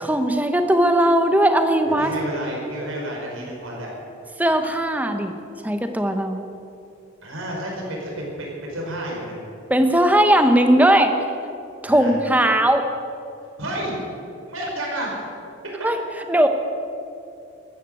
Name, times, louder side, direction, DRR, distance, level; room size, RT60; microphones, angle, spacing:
voice 1, 0.1-2.1 4.4-5.3 5.6-6.4 9.7-11.1 11.8-12.9 15.8-16.0 16.3-16.5, right 1 dB, 10° right, 7 dB, 0.9 m, -18 dB
voice 2, 1.8-3.9 7.2-9.4 11.9-12.1 13.6-13.9 14.5-15.2, right 1 dB, 85° right, -2 dB, 5.0 m, -30 dB
14.0 x 12.0 x 7.7 m, 2.6 s
head